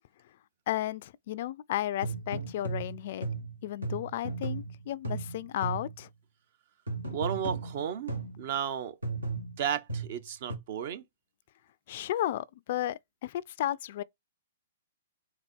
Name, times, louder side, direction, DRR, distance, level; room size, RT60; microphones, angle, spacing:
voice 1, 0.7-3.3 3.6-6.1 11.9-14.0, left 13 dB, 55° left, 0.3 m, -33 dB
sound 1, 2.0-6.1 6.9-8.4 9.0-10.6, right 3 dB, 90° right, 1.4 m, -36 dB
voice 2, 7.1-9.0 9.6-11.0, right 9 dB, 50° right, 0.6 m, -33 dB
4.1 x 2.7 x 4.3 m
figure-of-eight pair, 115°, 0 cm